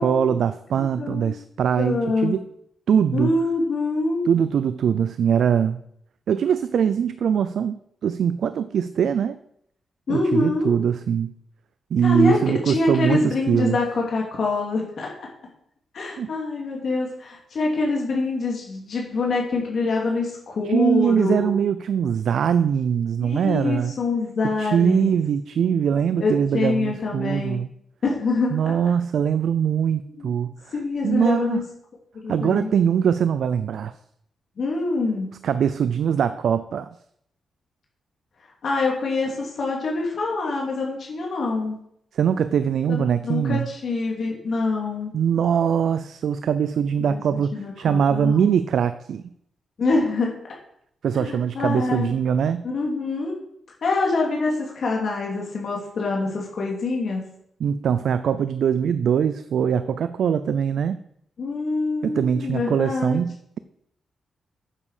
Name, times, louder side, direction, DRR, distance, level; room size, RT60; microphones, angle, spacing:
voice 1, 0.0-2.4 2.9-3.3 4.3-5.8 6.3-9.4 10.1-11.3 11.9-13.8 16.2-16.3 20.7-23.9 24.6-27.7 28.5-30.5 31.0-31.6 32.3-33.9 35.4-36.9 42.1-43.7 45.1-49.2 51.0-52.7 57.6-61.0 62.0-63.6, right 8 dB, 75° right, 12 dB, 0.4 m, -22 dB
voice 2, 0.8-1.4 1.8-2.3 3.1-4.2 10.1-10.7 12.0-12.4 12.6-15.3 15.9-21.5 23.2-25.2 26.2-27.6 28.0-28.7 30.2-30.3 30.7-31.6 32.2-32.7 34.6-35.4 38.6-41.8 42.9-45.1 47.0-47.2 47.5-48.5 49.8-50.3 51.1-52.1 52.6-53.3 53.8-57.3 61.4-63.2, left 3 dB, 60° left, -1 dB, 2.7 m, -25 dB
9.7 x 7.5 x 4.9 m, 0.72 s
cardioid pair, 85°, 0 cm